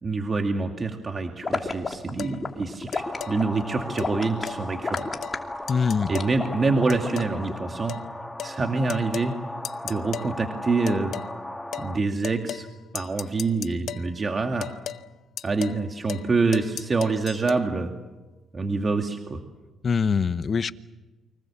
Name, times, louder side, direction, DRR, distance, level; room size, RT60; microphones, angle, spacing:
voice 1, 0.0-5.0 6.1-8.0 8.4-9.3 9.8-11.1 11.8-12.7 12.9-14.7 15.4-17.9 18.5-19.4, right 3 dB, 35° right, 4 dB, 2.3 m, -26 dB
sound 1, 1.4-7.6, left 3 dB, 30° left, 2.8 m, -32 dB
sound 2, 2.2-2.4 2.9-3.4 4.0-4.1 4.5-4.6 5.0-5.4 5.7-6.4 6.9-7.4 7.9-8.1 8.4-8.6 8.9-9.3 9.6-10.3 10.9-11.3 11.7-11.9 12.2-12.7 12.9-14.1 14.6-15.0 15.4-15.8 16.1-16.3 16.5-17.6, left 10 dB, 65° left, 0.9 m, -36 dB
sound 3, 3.0-12.0, left 1 dB, 10° left, 1.6 m, -37 dB
voice 2, 5.7-6.1 19.8-20.7, left 5 dB, 45° left, 14 dB, 0.9 m, -23 dB
29.5 x 24.5 x 7.3 m, 1.2 s
cardioid pair, 90°, 0 cm